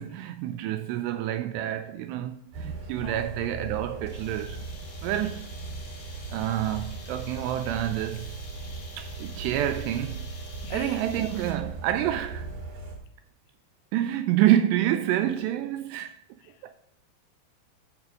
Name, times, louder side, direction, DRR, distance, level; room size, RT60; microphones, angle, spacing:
voice 1, 0.0-4.6 5.0-5.5 6.3-8.4 9.0-10.3 10.7-12.5 13.9-16.2 16.6-16.7, right 12 dB, 85° right, 2.5 m, -28 dB
sound 1, 2.5-13.0, right 3 dB, 65° right, 3.6 m, -38 dB
voice 2, 3.0-3.4 10.6-11.1 16.4-16.7, left 11 dB, 85° left, 3.2 m, -44 dB
sound 2, 4.1-11.8, left 3 dB, 50° left, 1.3 m, -48 dB
13.0 x 4.8 x 4.8 m
omnidirectional pair, 5.4 m